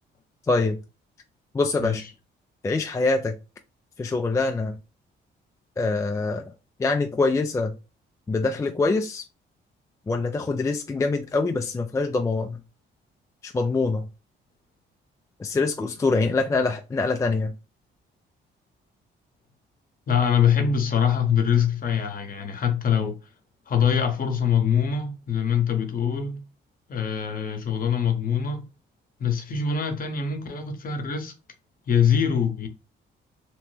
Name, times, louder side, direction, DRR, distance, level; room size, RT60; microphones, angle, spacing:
voice 1, 0.5-0.8 1.5-2.0 2.6-3.4 4.0-4.8 5.8-6.5 6.8-7.8 8.3-9.2 10.1-12.6 13.4-14.0 15.4-17.5, left 3 dB, 15° left, 0.3 m, -24 dB
voice 2, 20.1-23.1 23.7-26.4 26.9-28.6 29.2-31.3 31.9-32.7, left 7 dB, 45° left, 0.8 m, -23 dB
3.0 x 2.1 x 3.2 m
cardioid pair, 90°, 20 cm